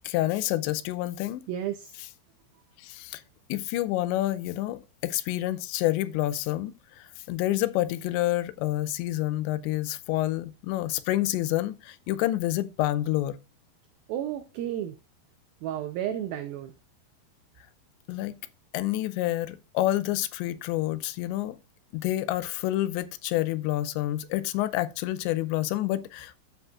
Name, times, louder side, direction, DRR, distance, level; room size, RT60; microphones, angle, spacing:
voice 1, 0.0-1.5 2.8-3.2 3.5-13.4 18.1-18.4 18.7-21.6 21.9-26.4, left 15 dB, 90° left, 2.9 m, -28 dB
voice 2, 1.5-1.9 14.1-15.0 15.6-16.7, right 11 dB, 85° right, 2.1 m, -32 dB
13.0 x 5.3 x 2.4 m
omnidirectional pair, 5.0 m